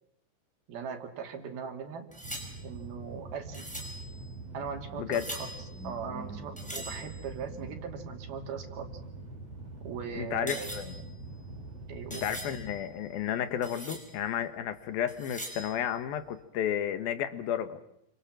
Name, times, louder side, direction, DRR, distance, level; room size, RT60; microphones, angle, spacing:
voice 1, 0.7-2.1 2.6-3.7 4.5-5.6 5.8-8.9 9.8-10.7 11.9-12.3, right 6 dB, 90° right, 5 dB, 4.6 m, -39 dB
sound 1, 2.1-7.7 9.0-13.2 13.5-14.3 15.1-16.0, right 1 dB, ahead, 5.2 m, -44 dB
sound 2, 2.2-12.8, right 2 dB, 45° right, 5.3 m, -44 dB
voice 2, 10.2-11.0 12.1-17.8, left 10 dB, 80° left, 11 dB, 3.3 m, -32 dB
29.0 x 25.5 x 7.6 m, 0.76 s
omnidirectional pair, 4.2 m